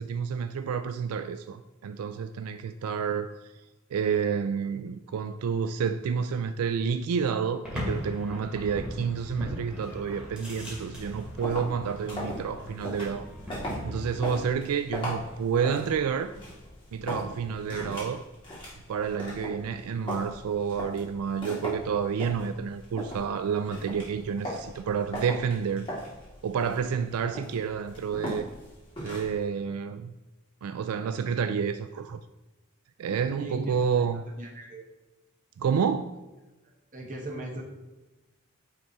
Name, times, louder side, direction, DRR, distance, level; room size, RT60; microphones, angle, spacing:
voice 1, 0.0-3.5 3.9-13.3 13.8-16.3 16.9-18.2 18.9-25.9 26.4-28.5 29.0-30.1 30.6-32.2 33.0-34.2 35.6-36.2, right 6 dB, 85° right, 0.3 m, -29 dB
sound 1, 7.6-14.3, left 1 dB, 5° right, 2.1 m, -39 dB
sound 2, 10.9-29.4, equal, 25° left, 2.3 m, -39 dB
voice 2, 33.4-33.7 34.4-34.8 36.9-37.6, right 1 dB, 35° right, 1.6 m, -37 dB
9.3 x 3.5 x 4.2 m
head